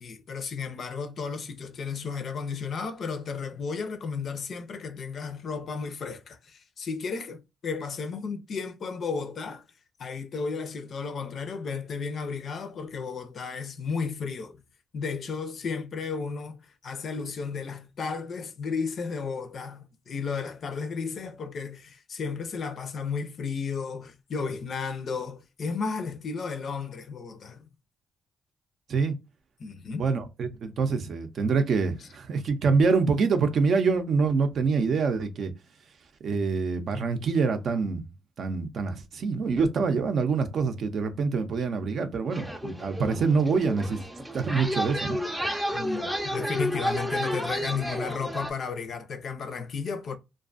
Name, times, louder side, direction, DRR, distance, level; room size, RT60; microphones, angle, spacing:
voice 1, 0.0-9.6 10.0-14.6 14.9-27.6 29.6-30.1 45.7-50.2, left 5 dB, 55° left, 0.4 m, -33 dB
voice 2, 30.0-35.5 36.2-38.0 38.4-44.0 44.3-45.2, right 4 dB, 60° right, 0.5 m, -25 dB
sound 1, 42.3-48.5, equal, 5° right, 0.4 m, -31 dB
2.4 x 2.2 x 2.4 m
cardioid pair, 90°, 0 cm